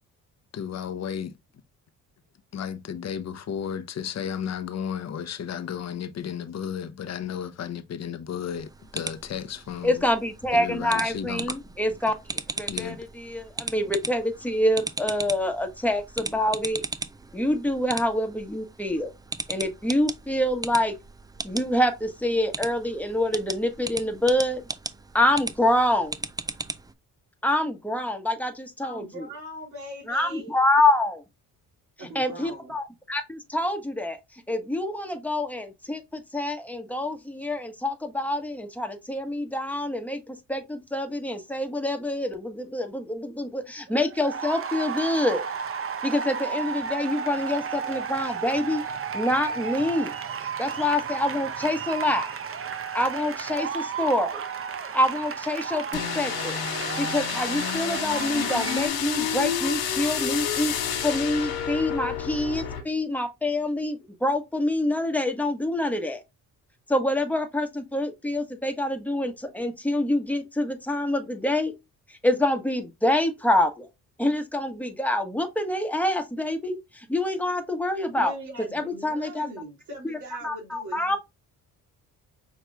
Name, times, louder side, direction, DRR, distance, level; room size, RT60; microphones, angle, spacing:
voice 1, 0.5-1.3 2.5-9.9 10.5-11.6 12.7-13.0, left 8 dB, 45° left, 0.8 m, -33 dB
sound 1, 8.5-26.9, right 3 dB, 10° right, 0.3 m, -37 dB
voice 2, 9.8-16.8 17.3-19.1 19.5-20.9 21.4-24.6 25.1-26.2 27.4-29.2 30.1-31.2 32.1-34.2 34.5-45.5 46.0-48.8 49.1-50.1 50.4-52.3 52.9-54.4 54.9-56.6 57.0-60.7 61.0-66.2 66.9-71.7 72.1-73.9 74.2-78.3 78.7-79.5 80.0-80.2 80.4-81.2, left 1 dB, 5° left, 1.2 m, -26 dB
voice 3, 28.8-30.5 32.0-32.7 78.2-81.2, right 1 dB, 55° right, 2.5 m, -40 dB
sound 2, 43.9-58.9, right 6 dB, 35° right, 0.8 m, -33 dB
sound 3, 55.9-62.8, left 8 dB, 85° left, 1.3 m, -29 dB
5.9 x 3.1 x 2.3 m
cardioid pair, 75°, 36 cm